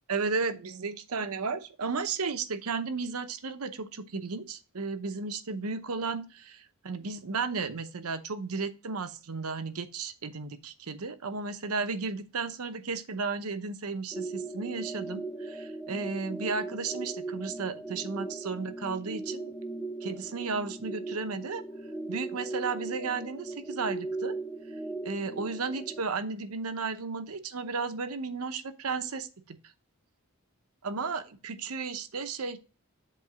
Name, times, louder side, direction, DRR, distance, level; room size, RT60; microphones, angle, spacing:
voice 1, 0.1-19.5 20.0-21.6 22.1-24.3 25.0-29.6 30.8-32.6, right 4 dB, 90° right, 10 dB, 0.8 m, -34 dB
sound 1, 14.1-26.0, right 3 dB, 5° left, 0.7 m, -38 dB
7.8 x 3.2 x 5.9 m, 0.35 s
head